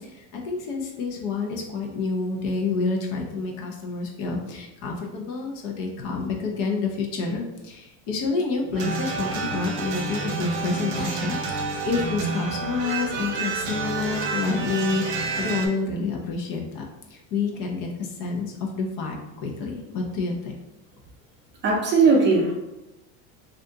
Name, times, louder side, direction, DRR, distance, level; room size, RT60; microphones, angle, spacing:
voice 1, 0.0-20.5, left 4 dB, 60° left, 1 dB, 0.7 m, -28 dB
sound 1, 8.7-15.7, right 4 dB, 65° right, 0.8 m, -29 dB
voice 2, 21.6-22.5, right 4 dB, 30° right, -1 dB, 0.5 m, -18 dB
2.7 x 2.5 x 3.4 m, 0.97 s
cardioid pair, 160°, 38 cm